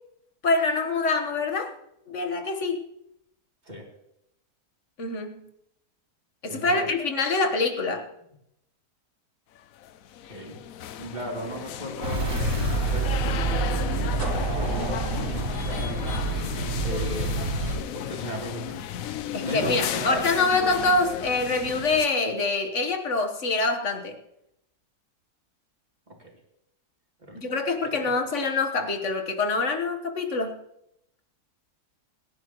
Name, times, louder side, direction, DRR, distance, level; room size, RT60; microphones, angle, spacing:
voice 1, 0.4-1.7 2.1-2.8 5.0-5.4 6.4-8.1 19.3-24.2 27.3-30.6, left 3 dB, 50° left, 5 dB, 1.7 m, -25 dB
voice 2, 6.5-6.9 10.2-10.6 11.0-12.4 12.9-16.1 16.8-17.5 17.9-18.8 19.4-20.2 26.1-26.3 27.2-27.5 28.0-28.1, right 1 dB, 25° right, -2 dB, 3.3 m, -36 dB
sound 1, 9.6-22.1, left 10 dB, 65° left, 1.0 m, -35 dB
sound 2, 12.0-17.8, right 3 dB, 75° right, 3.5 m, -27 dB
sound 3, 14.2-17.0, right 2 dB, 50° right, 3.1 m, -37 dB
25.0 x 11.0 x 3.1 m, 0.82 s
omnidirectional pair, 1.7 m